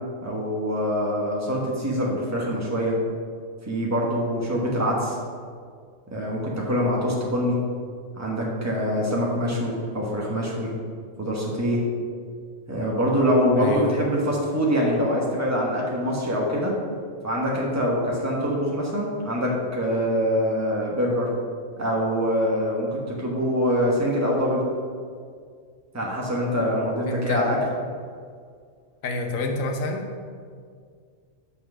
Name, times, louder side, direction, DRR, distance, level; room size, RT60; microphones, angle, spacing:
voice 1, 0.2-2.9 3.7-5.2 6.1-7.6 8.2-10.7 11.2-11.8 12.7-16.7 17.2-21.3 21.8-24.6 25.9-27.6, equal, 15° right, -3 dB, 1.2 m, -24 dB
voice 2, 13.5-14.0 27.1-27.4 29.0-30.1, left 3 dB, 80° left, 3 dB, 1.3 m, -28 dB
5.9 x 5.8 x 6.1 m, 2.1 s
omnidirectional pair, 1.4 m